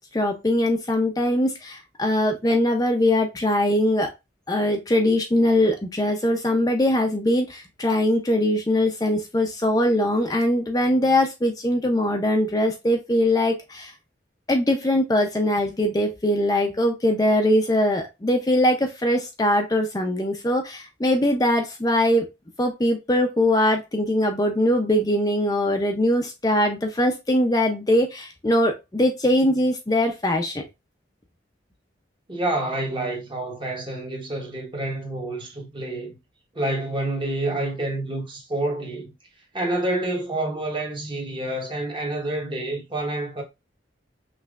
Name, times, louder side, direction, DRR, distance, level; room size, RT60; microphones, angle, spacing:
voice 1, 0.1-4.1 4.5-13.9 14.5-22.2 22.6-30.6, left 1 dB, 20° left, 0.5 m, -21 dB
voice 2, 32.3-36.2 36.5-39.1 39.5-43.4, right 2 dB, 30° right, 1.1 m, -28 dB
5.6 x 3.1 x 2.4 m
head